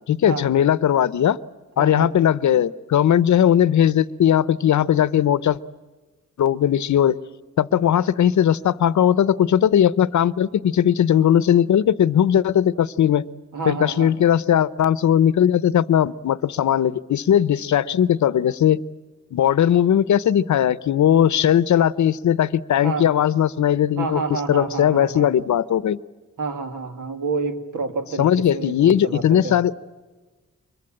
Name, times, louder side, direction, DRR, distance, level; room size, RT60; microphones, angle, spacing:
voice 1, 0.1-1.4 1.8-5.6 6.4-7.2 7.6-13.2 13.7-18.8 19.3-26.0 28.2-29.8, left 10 dB, 70° left, 18 dB, 0.7 m, -18 dB
voice 2, 1.8-2.1 13.5-14.1 22.8-23.1 24.0-25.3 26.4-29.6, right 4 dB, 90° right, 8 dB, 2.2 m, -29 dB
24.5 x 22.5 x 8.7 m, 1.3 s
wide cardioid pair, 170°, 30 cm